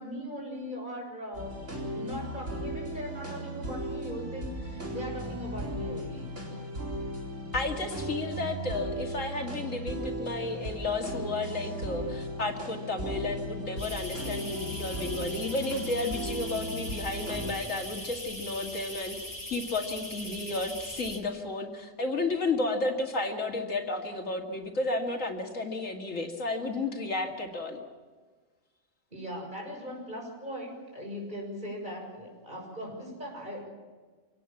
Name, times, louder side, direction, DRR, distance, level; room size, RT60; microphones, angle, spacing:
voice 1, 0.0-1.6 1.9-6.3 29.1-33.7, equal, 35° right, 0 dB, 6.9 m, -39 dB
sound 1, 1.3-17.5, right 1 dB, 70° right, 4.7 m, -36 dB
voice 2, 7.5-19.2 19.5-27.8, left 2 dB, 90° left, 2 dB, 2.7 m, -32 dB
sound 2, 13.8-21.2, left 1 dB, 15° left, 2.5 m, -41 dB
25.5 x 18.5 x 7.3 m, 1.4 s
omnidirectional pair, 1.3 m